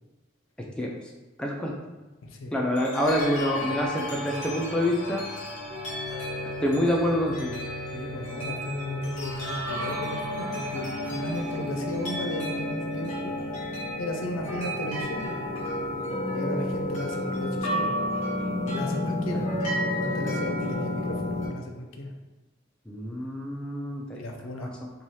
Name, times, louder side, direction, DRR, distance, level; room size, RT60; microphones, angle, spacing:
voice 1, 1.4-1.7 2.5-5.3 6.6-7.6 22.9-24.2 24.6-24.9, equal, 5° left, -2 dB, 0.3 m, -27 dB
voice 2, 2.2-2.5 7.9-13.4 14.0-15.4 16.3-17.9 18.6-19.5 20.0-22.1 24.1-24.7, left 1 dB, 80° left, 3 dB, 0.5 m, -35 dB
sound 1, 2.8-21.5, left 1 dB, 35° left, 1.1 m, -31 dB
2.7 x 2.3 x 3.2 m, 1.2 s
head